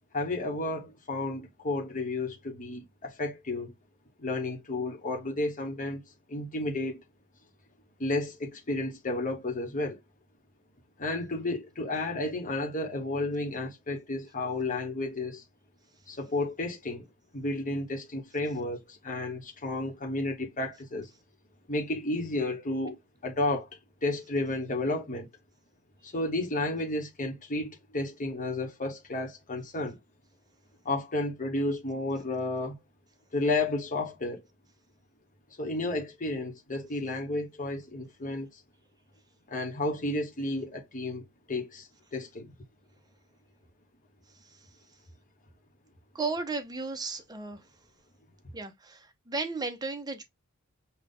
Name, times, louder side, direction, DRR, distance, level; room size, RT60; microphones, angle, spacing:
voice 1, 0.1-3.7 4.2-6.0 6.3-7.0 8.0-10.0 11.0-15.4 16.1-17.1 17.3-21.1 21.7-23.7 24.0-25.3 26.0-30.0 30.8-32.7 33.3-34.4 35.6-38.5 39.5-42.5, left 2 dB, 35° left, 1.1 m, -32 dB
voice 2, 46.1-47.6 48.5-50.2, right 3 dB, 20° right, 0.8 m, -34 dB
5.6 x 2.3 x 3.7 m
head